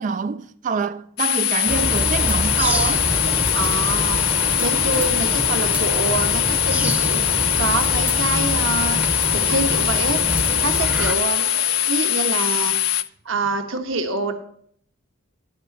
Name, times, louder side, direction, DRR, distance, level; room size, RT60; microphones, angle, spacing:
voice 1, 0.0-3.1, right 5 dB, 35° right, 0.3 m, -26 dB
sound 1, 1.2-13.0, left 13 dB, 80° left, 0.5 m, -22 dB
sound 2, 1.7-11.1, equal, 5° right, 0.7 m, -26 dB
sound 3, 2.2-11.9, right 4 dB, 85° right, 1.9 m, -37 dB
voice 2, 3.5-9.0 9.3-10.2 10.5-11.4 11.9-12.7 13.2-14.3, right 3 dB, 65° right, 1.3 m, -26 dB
12.0 x 5.0 x 7.2 m
head